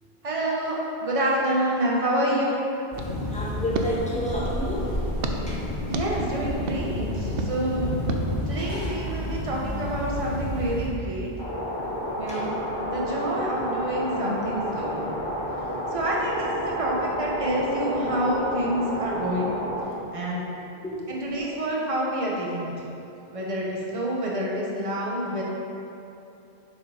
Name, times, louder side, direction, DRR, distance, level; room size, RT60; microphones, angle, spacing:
voice 1, 0.2-2.7 5.9-7.9 8.5-11.3 12.2-12.5 12.8-15.1 15.9-19.5 20.1-20.4 21.1-22.7 23.3-25.4, right 1 dB, 35° right, -4 dB, 1.2 m, -27 dB
sound 1, 2.9-10.9, left 1 dB, 65° left, 1.8 m, -30 dB
sound 2, 2.9-4.7 5.2-5.4 5.9-6.1 6.7-6.8 7.4-7.5 8.1-8.2, right 4 dB, 70° right, 0.9 m, -33 dB
voice 2, 3.3-4.9 5.5-5.6 12.3-12.4 13.3-13.5 15.4-15.5 20.8-21.1, equal, 5° left, -6 dB, 1.4 m, -31 dB
sound 3, 11.4-19.8, equal, 50° left, 1.8 m, -30 dB
7.6 x 5.5 x 5.1 m, 2.8 s
omnidirectional pair, 1.0 m